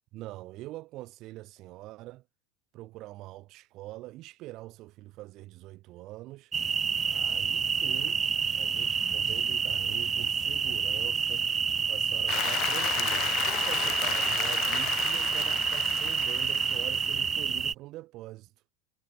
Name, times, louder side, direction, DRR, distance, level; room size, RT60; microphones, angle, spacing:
voice 1, 0.1-2.2 2.7-6.5 7.1-8.2 8.6-11.5 11.9-18.5, right 17 dB, 55° right, 2.7 m, -44 dB
sound 1, 6.5-17.7, right 6 dB, 30° right, 0.9 m, -28 dB
Applause, 12.3-17.3, left 18 dB, 55° left, 0.7 m, -33 dB
hypercardioid pair, 75°, 0 cm